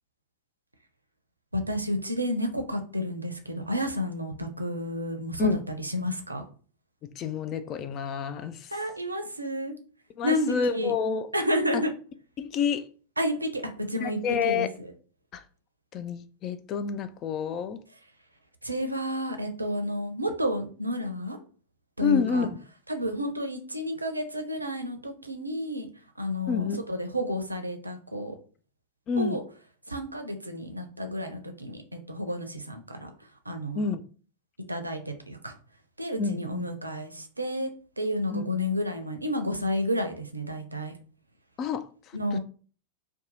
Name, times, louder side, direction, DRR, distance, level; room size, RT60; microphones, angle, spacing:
voice 1, 1.5-6.4 8.7-9.7 10.2-10.9 11.3-11.9 13.2-14.9 18.6-21.4 22.0-22.5 22.9-25.9 26.2-28.4 29.2-29.4 29.9-31.8 32.1-33.1 33.5-33.8 34.7-35.5 36.0-37.7 38.0-40.9 42.1-42.4, equal, 85° right, 0.5 m, -31 dB
voice 2, 7.2-8.7 10.2-11.3 11.7-11.8 12.4-12.9 14.0-14.7 15.3-15.4 15.9-17.8 22.0-22.6 26.5-26.8 29.1-29.4 33.7-34.0 36.2-36.7 38.3-38.6 41.6-41.9 42.3-42.4, left 6 dB, 35° left, 0.3 m, -28 dB
2.7 x 2.2 x 4.0 m
figure-of-eight pair, 90°, 0 cm